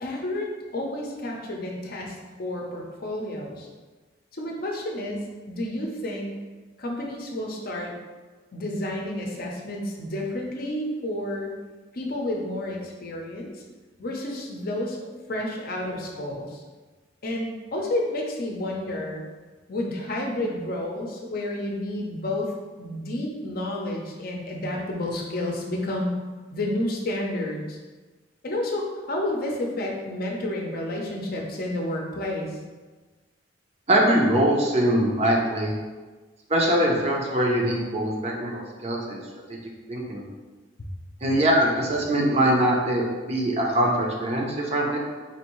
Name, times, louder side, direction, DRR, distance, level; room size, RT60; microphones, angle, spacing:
voice 1, 0.0-3.7 4.4-6.4 6.8-7.9 8.5-11.5 11.9-13.5 14.0-15.0 15.3-16.6 17.2-19.2 19.7-22.5 22.8-26.1 26.5-27.8 28.4-32.6, left 1 dB, 50° left, 0 dB, 0.6 m, -30 dB
voice 2, 33.9-35.7 36.5-39.2 39.5-39.6 39.9-40.2 41.2-45.0, right 1 dB, 35° right, -1 dB, 0.6 m, -22 dB
4.3 x 2.6 x 3.0 m, 1.3 s
head